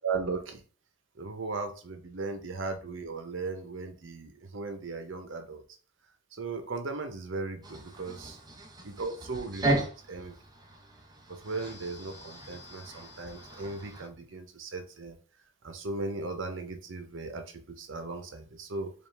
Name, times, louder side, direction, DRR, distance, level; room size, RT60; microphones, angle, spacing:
voice 1, 0.0-0.6 1.1-5.6 6.3-8.4 8.8-10.4 11.3-15.2 15.6-18.9, right 3 dB, 70° right, 0.8 m, -37 dB
sound 1, 7.6-14.1, right 2 dB, 20° right, 0.6 m, -36 dB
5.1 x 2.4 x 3.3 m
head